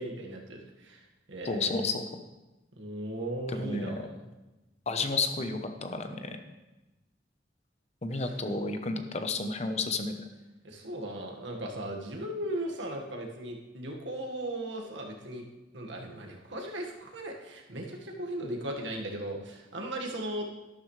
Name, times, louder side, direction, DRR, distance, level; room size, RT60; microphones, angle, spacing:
voice 1, 0.0-1.9 2.8-4.1 8.1-8.3 10.6-15.4 15.7-20.5, right 1 dB, 80° right, 1 dB, 1.8 m, -37 dB
voice 2, 1.4-2.1 3.5-4.0 4.9-6.4 8.0-10.2, left 3 dB, 35° left, 6 dB, 0.9 m, -31 dB
12.5 x 12.0 x 3.3 m, 1.1 s
head